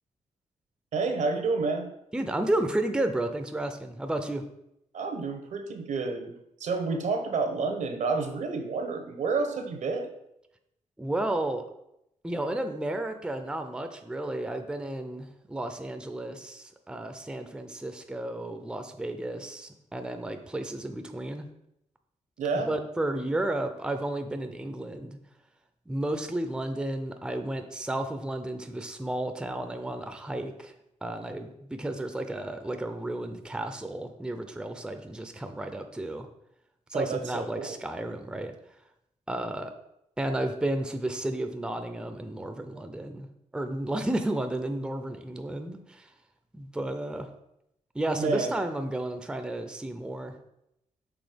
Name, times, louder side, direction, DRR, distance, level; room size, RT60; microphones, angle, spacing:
voice 1, 0.9-1.9 4.9-6.3 6.6-10.1 22.4-22.7 36.9-37.8 48.2-48.6, right 4 dB, 80° right, 6 dB, 1.0 m, -29 dB
voice 2, 2.1-4.4 11.0-11.7 12.2-21.5 22.7-25.2 25.9-30.7 31.0-36.3 36.9-38.5 39.3-39.7 40.2-43.3 43.5-46.1 46.5-47.3 47.9-50.3, right 1 dB, 5° right, 7 dB, 0.5 m, -32 dB
6.2 x 3.6 x 5.1 m, 0.82 s
wide cardioid pair, 115°, 13 cm